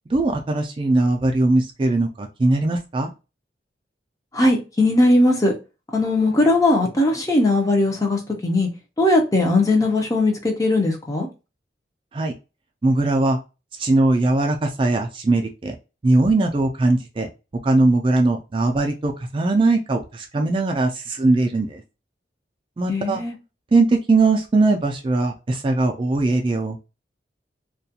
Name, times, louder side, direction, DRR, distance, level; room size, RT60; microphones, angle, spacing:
voice 1, 0.1-3.1 12.1-12.3 12.8-13.4 13.8-15.7 16.0-17.3 17.6-21.8 22.8-23.2 23.7-26.8, right 2 dB, 30° right, 3 dB, 0.3 m, -20 dB
voice 2, 4.3-5.5 5.9-8.7 9.0-11.3 22.9-23.3, left 2 dB, 20° left, 1 dB, 0.5 m, -19 dB
2.3 x 2.2 x 2.7 m, 0.29 s
head